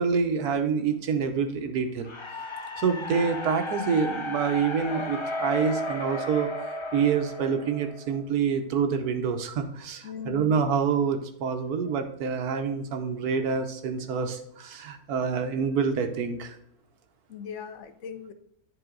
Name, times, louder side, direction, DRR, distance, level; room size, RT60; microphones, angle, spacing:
voice 1, 0.0-2.1 2.8-16.6, right 6 dB, 90° right, 7 dB, 1.4 m, -27 dB
sound 1, 2.0-8.2, left 2 dB, 40° left, 0.4 m, -34 dB
voice 2, 10.0-10.5 17.3-18.3, left 7 dB, 65° left, 10 dB, 0.9 m, -39 dB
10.0 x 4.0 x 3.8 m, 0.74 s
omnidirectional pair, 1.6 m